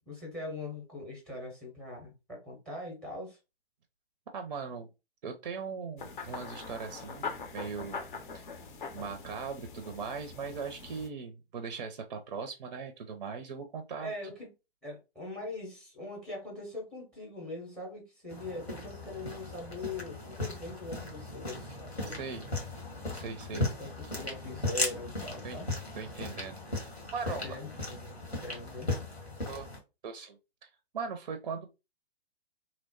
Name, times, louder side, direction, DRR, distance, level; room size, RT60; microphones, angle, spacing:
voice 1, 0.0-3.4 14.0-14.5 14.8-22.2 23.5-25.6 27.3-28.9, left 2 dB, 5° left, 0.7 m, -42 dB
voice 2, 4.3-4.9 5.2-8.1 8.3-8.5 8.9-14.3 22.1-22.5 23.1-23.6 25.4-25.6 25.9-27.5 29.5-29.7 30.0-31.7, right 5 dB, 45° right, 0.4 m, -40 dB
sound 1, 6.0-11.1, left 5 dB, 50° left, 0.7 m, -42 dB
sound 2, 18.3-29.8, left 2 dB, 90° left, 1.4 m, -37 dB
2.9 x 2.0 x 2.7 m
figure-of-eight pair, 115°, 32 cm